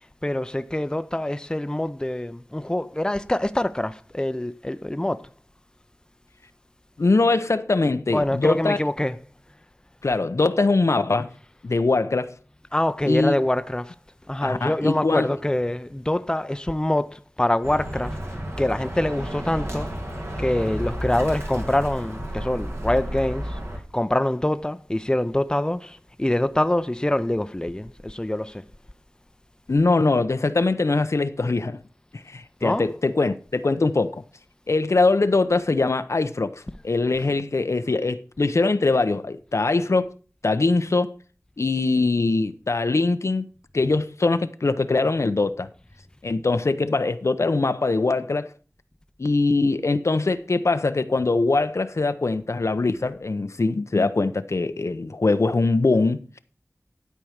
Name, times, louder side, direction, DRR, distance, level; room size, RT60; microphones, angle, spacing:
voice 1, 0.2-5.2 8.1-9.2 12.7-13.9 14.3-18.2 18.6-19.9 20.4-23.6 23.9-28.6 32.6-32.9, left 1 dB, 15° left, 0.6 m, -25 dB
voice 2, 7.0-8.8 10.0-11.3 11.6-12.4 13.0-13.3 14.4-15.3 29.7-31.8 32.1-34.2 34.7-40.1 40.4-41.1 41.6-43.5 43.7-45.7 46.2-48.5 49.2-56.4, left 3 dB, 80° left, 0.7 m, -22 dB
Bird, 17.6-23.8, equal, 60° right, 2.4 m, -32 dB
12.0 x 4.7 x 6.4 m
wide cardioid pair, 50°, 5 cm